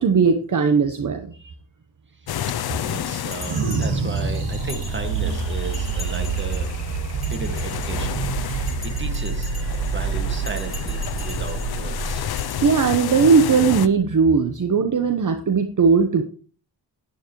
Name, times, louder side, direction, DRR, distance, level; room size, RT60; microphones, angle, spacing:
voice 1, 0.0-1.4 12.6-16.2, right 5 dB, 45° right, 7 dB, 1.1 m, -18 dB
voice 2, 2.1-6.8 7.2-12.3, right 3 dB, 25° right, 7 dB, 2.0 m, -35 dB
sound 1, 2.3-13.9, left 10 dB, 60° left, 0.7 m, -32 dB
Bell, 3.3-5.4 5.7-6.7 7.1-8.2 8.7-9.9 10.4-11.7 12.4-12.5, left 3 dB, ahead, 5.9 m, -41 dB
sound 2, 3.5-14.1, right 5 dB, 80° right, 1.9 m, -27 dB
12.0 x 9.5 x 3.1 m, 0.40 s
cardioid pair, 85°, 42 cm